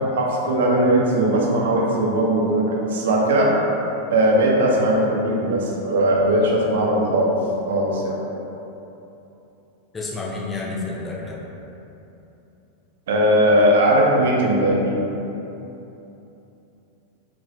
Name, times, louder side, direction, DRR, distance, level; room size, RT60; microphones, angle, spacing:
voice 1, 0.1-3.5 4.1-7.3 7.7-8.2 13.1-15.0, right 1 dB, 60° right, -1 dB, 0.7 m, -19 dB
voice 2, 9.9-11.4, left 3 dB, 15° left, -4 dB, 0.7 m, -30 dB
4.9 x 3.6 x 2.4 m, 3.0 s
figure-of-eight pair, 90°, 0 cm